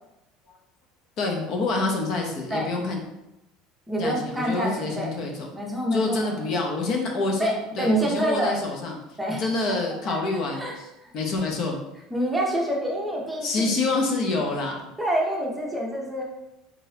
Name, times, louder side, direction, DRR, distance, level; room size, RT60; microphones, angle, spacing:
voice 1, 1.2-3.0 4.0-5.5 5.9-9.0 9.4-10.9 11.1-11.8 13.4-14.9, left 3 dB, 50° left, 1 dB, 0.7 m, -27 dB
voice 2, 3.9-5.1 5.5-6.3 7.4-8.6 9.2-9.4 10.1-11.1 12.1-13.5 15.0-16.2, right 1 dB, 5° right, -2 dB, 0.8 m, -27 dB
3.8 x 3.6 x 2.8 m, 0.90 s
cardioid pair, 140°, 0 cm